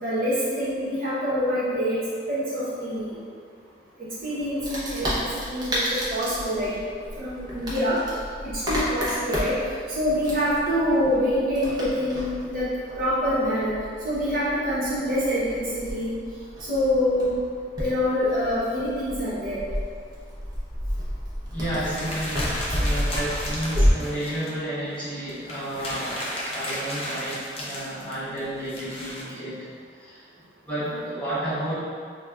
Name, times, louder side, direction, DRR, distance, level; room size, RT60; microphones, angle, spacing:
voice 1, 0.0-2.0 2.3-3.2 4.2-5.1 5.4-6.8 7.2-8.0 8.7-9.5 9.9-12.7 13.0-13.7 14.0-16.1 16.7-17.3 17.8-19.6, equal, 50° right, -10 dB, 0.8 m, -25 dB
Wood, 4.6-23.9, equal, 20° right, 0.6 m, -31 dB
voice 2, 21.5-29.7 30.0-30.2 30.6-31.7, right 1 dB, 10° left, -14 dB, 1.1 m, -31 dB
sound 1, 21.8-24.5 25.0-25.1 25.3-29.2, left 1 dB, 30° left, 0.5 m, -34 dB
4.6 x 2.1 x 2.3 m, 2.1 s
head